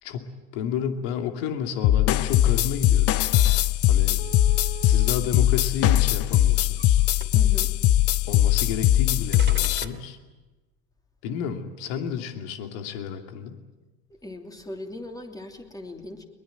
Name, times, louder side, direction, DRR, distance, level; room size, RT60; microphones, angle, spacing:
voice 1, 0.0-3.1 3.9-4.2 4.8-7.0 8.3-10.2 11.2-13.6, left 7 dB, 60° left, 6 dB, 2.7 m, -31 dB
sound 1, 1.8-9.8, left 13 dB, 45° left, 1.0 m, -20 dB
sound 2, 3.6-3.7 4.2-5.1 6.0-6.9 7.2-7.6 8.7-8.8 9.3-10.1, right 9 dB, 35° right, 3.0 m, -41 dB
voice 2, 7.3-7.8 14.1-16.3, left 2 dB, 10° left, 3 dB, 3.1 m, -39 dB
22.5 x 21.0 x 9.1 m, 1.2 s
hypercardioid pair, 80°, 33 cm